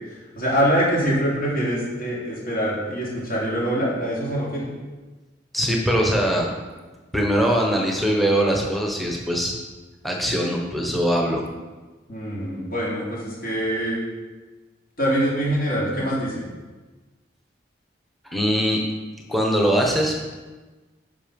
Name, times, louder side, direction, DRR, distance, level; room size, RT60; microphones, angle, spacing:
voice 1, 0.0-4.7 12.1-14.0 15.0-16.5, equal, 55° left, -5 dB, 3.5 m, -24 dB
voice 2, 5.5-6.5 7.1-9.5 10.0-11.4 18.2-18.8 19.3-20.3, equal, ahead, 0 dB, 1.2 m, -22 dB
11.5 x 5.8 x 5.3 m, 1.2 s
head